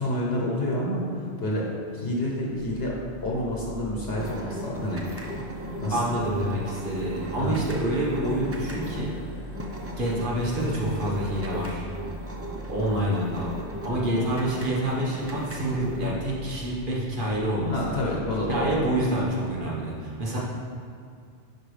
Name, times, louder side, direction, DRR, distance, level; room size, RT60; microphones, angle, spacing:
voice 1, 0.0-1.7 1.9-2.9 3.2-5.0 5.8-6.0 7.4-7.7 17.7-18.8, left 1 dB, 70° left, -3 dB, 1.3 m, -28 dB
sound 1, 2.5-19.3, equal, 85° right, 1.9 m, -43 dB
sound 2, 4.2-16.1, right 1 dB, 15° right, 0.6 m, -37 dB
voice 2, 5.9-9.1 10.0-11.9 12.7-13.5 13.8-17.7 18.5-20.4, right 1 dB, 50° right, -4 dB, 1.4 m, -27 dB
10.5 x 4.8 x 3.3 m, 2.2 s
omnidirectional pair, 1.1 m